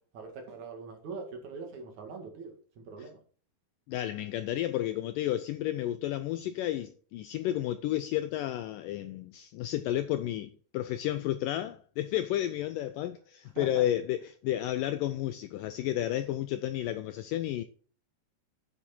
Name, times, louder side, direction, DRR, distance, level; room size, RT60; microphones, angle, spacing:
voice 1, 0.1-3.2 13.6-13.8, right 4 dB, 55° right, 3.0 m, -43 dB
voice 2, 3.9-17.6, left 13 dB, 85° left, 1.9 m, -32 dB
10.0 x 6.4 x 4.4 m
omnidirectional pair, 4.4 m